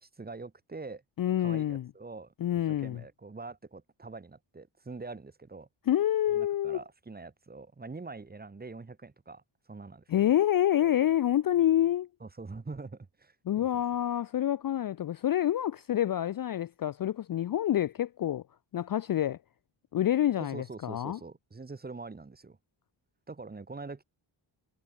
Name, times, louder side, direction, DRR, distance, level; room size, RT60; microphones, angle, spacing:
voice 1, 0.0-1.0 1.4-5.7 6.3-10.3 12.2-13.7 20.4-22.6 23.3-24.0, right 3 dB, 20° right, 1.2 m, -44 dB
voice 2, 1.2-1.9 2.4-3.0 5.9-6.8 10.1-12.1 13.5-18.4 18.7-19.4 19.9-21.2, left 11 dB, 45° left, 0.4 m, -27 dB
wide cardioid pair, 135°, 49 cm